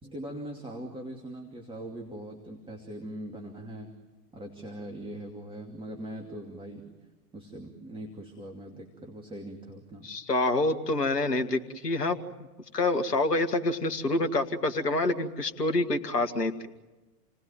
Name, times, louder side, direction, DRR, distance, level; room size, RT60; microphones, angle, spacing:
voice 1, 0.0-3.9 4.3-6.9 7.3-10.1, right 1 dB, 10° right, 2 dB, 2.6 m, -41 dB
voice 2, 10.0-12.2 12.7-16.7, left 2 dB, 80° left, 7 dB, 2.1 m, -27 dB
29.5 x 19.0 x 9.2 m, 1.2 s
figure-of-eight pair, 105°, 47 cm